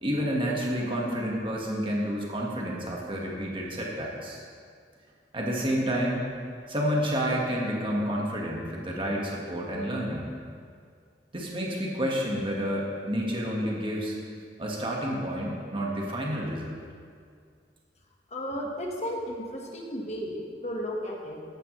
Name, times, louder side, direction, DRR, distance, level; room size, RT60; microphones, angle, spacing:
voice 1, 0.0-4.4 5.3-6.2 6.7-10.3 11.3-14.2 14.6-16.8, equal, 30° right, -2 dB, 1.7 m, -29 dB
voice 2, 18.3-21.4, equal, 40° left, 0 dB, 1.5 m, -34 dB
14.0 x 10.5 x 3.3 m, 2.2 s
head